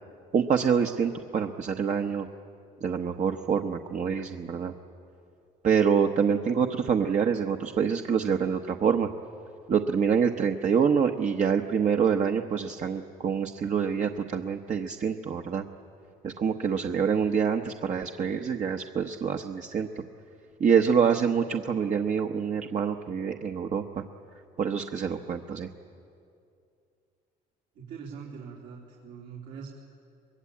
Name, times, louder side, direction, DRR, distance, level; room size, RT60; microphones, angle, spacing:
voice 1, 0.3-2.3 2.8-4.7 5.6-9.1 9.7-15.6 16.2-20.0 20.6-24.0 24.6-25.7, right 7 dB, 45° right, 4 dB, 1.1 m, -26 dB
voice 2, 27.8-29.7, right 6 dB, 80° right, -4 dB, 3.6 m, -42 dB
24.0 x 21.0 x 8.5 m, 2.5 s
cardioid pair, 110°, 17 cm